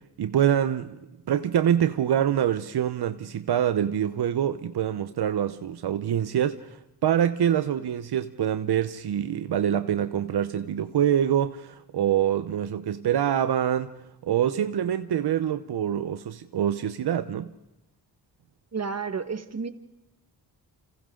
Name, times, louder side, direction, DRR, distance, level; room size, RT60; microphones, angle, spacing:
voice 1, 0.2-1.0 1.3-6.6 7.0-13.9 14.2-17.5, right 10 dB, 75° right, 0.9 m, -25 dB
voice 2, 18.7-19.7, right 5 dB, 40° right, 1.6 m, -31 dB
29.5 x 27.0 x 3.8 m
cardioid pair, 85°, 39 cm